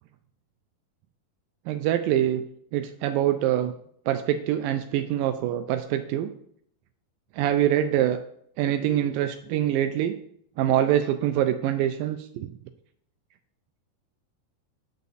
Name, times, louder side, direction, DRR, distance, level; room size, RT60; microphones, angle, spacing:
voice 1, 1.7-2.4 2.7-3.7 4.1-6.3 7.4-8.2 8.6-10.1 10.6-12.5, right 11 dB, 85° right, 9 dB, 2.0 m, -24 dB
9.5 x 8.1 x 4.1 m, 0.69 s
omnidirectional pair, 4.5 m